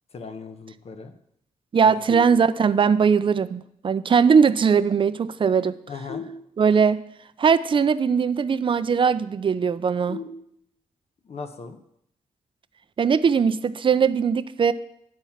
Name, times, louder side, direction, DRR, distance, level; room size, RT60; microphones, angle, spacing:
voice 1, 0.1-1.1 1.8-2.2 5.9-6.2 11.3-11.8, left 4 dB, 55° left, 7 dB, 1.0 m, -38 dB
voice 2, 1.7-5.8 6.6-7.0 7.4-10.2 13.0-14.7, right 6 dB, 40° right, 14 dB, 0.5 m, -20 dB
sound 1, 2.1-3.0 6.1-7.1 10.1-11.1, left 4 dB, 35° left, 4.4 m, -40 dB
11.0 x 4.3 x 7.2 m, 0.73 s
cardioid pair, 95°, 13 cm